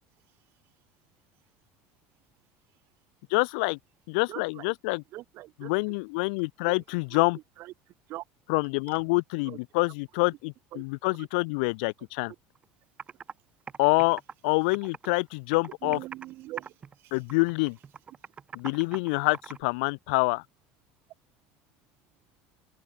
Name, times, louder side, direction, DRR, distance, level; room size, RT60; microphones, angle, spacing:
voice 1, 3.3-3.8 4.1-5.0 5.6-7.4 8.5-12.3 13.8-16.0 17.1-17.8 18.5-20.4, left 30 dB, 80° left, 1.6 m, -26 dB
voice 2, 4.3-4.7 5.1-5.7 6.6-6.8 7.1-7.2 7.6-8.2 8.9-9.0 9.4-9.6 10.7-10.8 11.2-11.3 15.8-17.2, right 17 dB, 55° right, 3.4 m, -43 dB
Computer keyboard, 12.5-12.6 13.0-13.3 13.7-15.2 15.5-16.3 16.6-17.0 17.3-19.6, right 6 dB, 25° right, 4.1 m, -42 dB
open air
cardioid pair, 140°, 5 cm